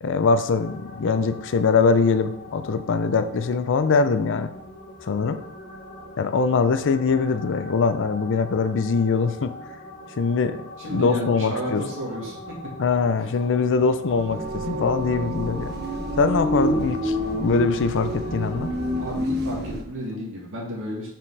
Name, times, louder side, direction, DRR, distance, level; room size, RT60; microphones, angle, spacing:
voice 1, 0.0-4.5 5.0-5.4 6.2-9.5 10.2-10.6 10.9-11.8 12.8-15.7 16.2-18.7, left 4 dB, 60° left, 10 dB, 0.5 m, -22 dB
sound 1, 0.5-19.2, left 2 dB, 40° left, 1.3 m, -41 dB
voice 2, 10.8-12.4 19.0-21.1, equal, 65° right, -3 dB, 1.8 m, -31 dB
sound 2, 14.1-19.8, equal, 45° right, 1.1 m, -28 dB
5.9 x 5.2 x 4.7 m, 0.79 s
head